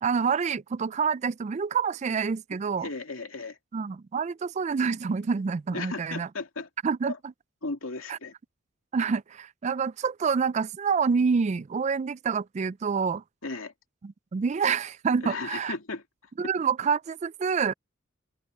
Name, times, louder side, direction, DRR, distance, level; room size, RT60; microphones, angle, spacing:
voice 1, 0.0-2.9 3.7-6.3 6.8-7.3 8.1-8.2 8.9-13.2 14.0-15.7 16.4-17.7, right 5 dB, 35° right, 0.3 m, -27 dB
voice 2, 2.8-3.6 5.7-6.7 7.0-7.2 7.6-8.3 13.4-13.7 15.2-16.0, left 3 dB, 75° left, 2.6 m, -35 dB
head